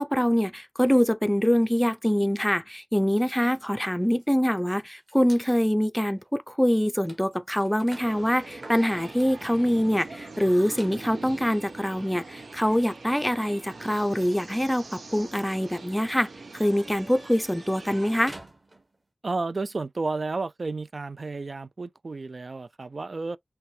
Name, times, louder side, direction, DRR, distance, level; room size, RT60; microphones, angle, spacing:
voice 1, 0.0-18.4, equal, 5° left, 0.5 m, -24 dB
sound 1, 3.1-5.5 6.2-6.3 6.6-19.0, right 1 dB, 35° right, 1.6 m, -52 dB
sound 2, 7.9-18.4, right 3 dB, 85° right, 1.1 m, -43 dB
voice 2, 19.2-23.4, right 3 dB, 50° right, 0.3 m, -32 dB
5.5 x 2.2 x 3.2 m
wide cardioid pair, 100°, 0 cm